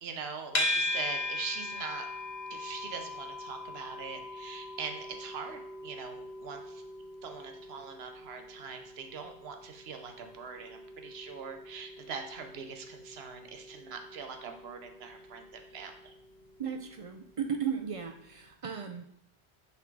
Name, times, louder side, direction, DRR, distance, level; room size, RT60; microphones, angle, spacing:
voice 1, 0.0-2.1 2.5-6.8 7.2-16.1, right 5 dB, 70° right, 5 dB, 1.0 m, -42 dB
sound 1, 0.5-17.7, left 2 dB, 45° left, 1.0 m, -40 dB
voice 2, 16.6-19.1, right 7 dB, 55° right, 6 dB, 0.4 m, -35 dB
5.7 x 3.6 x 4.5 m, 0.72 s
omnidirectional pair, 1.1 m